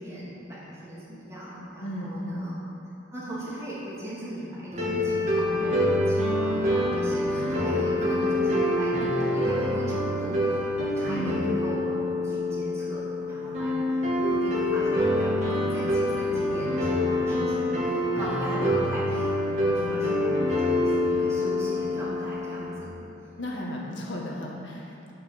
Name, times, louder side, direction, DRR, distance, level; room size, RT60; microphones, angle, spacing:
voice 1, 0.0-2.5 3.1-10.6 10.9-22.9, equal, 15° right, -9 dB, 3.0 m, -38 dB
voice 2, 1.8-2.4 11.1-11.5 19.6-20.0 23.4-25.1, equal, 85° left, -2 dB, 1.8 m, -35 dB
sound 1, 4.7-22.7, left 1 dB, 40° right, 2.5 m, -26 dB
9.7 x 8.9 x 7.0 m, 2.8 s
head